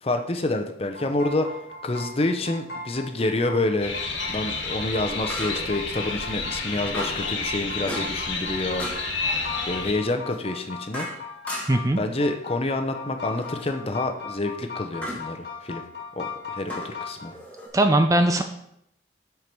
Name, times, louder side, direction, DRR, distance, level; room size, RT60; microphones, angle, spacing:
voice 1, 0.0-1.6 1.8-3.9 4.3-8.9 9.7-11.1 12.0-15.8 16.2-17.3, left 2 dB, 30° left, 6 dB, 0.7 m, -27 dB
sound 1, 0.9-17.3, left 3 dB, 55° left, 1.5 m, -38 dB
sound 2, 1.6-1.7 5.3-5.8 6.9-7.3 7.9-8.3 8.8-9.1 10.3-11.9 13.4-13.7 15.0-15.3 16.7-17.7, equal, 5° left, 1.5 m, -36 dB
sound 3, 3.8-9.9, left 4 dB, 80° left, 1.5 m, -30 dB
voice 2, 11.7-12.0 17.7-18.4, right 1 dB, 15° right, 6 dB, 0.4 m, -19 dB
7.6 x 4.7 x 5.3 m, 0.75 s
head